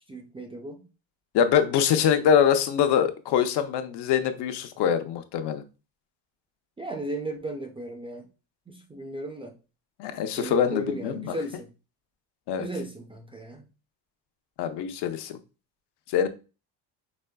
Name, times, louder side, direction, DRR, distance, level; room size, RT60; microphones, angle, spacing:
voice 1, 0.1-0.8 6.8-8.3 8.7-9.5 10.4-11.7 12.6-13.7, right 1 dB, 15° right, 0.3 m, -35 dB
voice 2, 1.3-5.6 10.0-11.4 12.5-12.7 14.6-15.4 16.1-16.3, left 8 dB, 70° left, 0.7 m, -24 dB
5.2 x 3.3 x 2.2 m
cardioid pair, 140°, 43 cm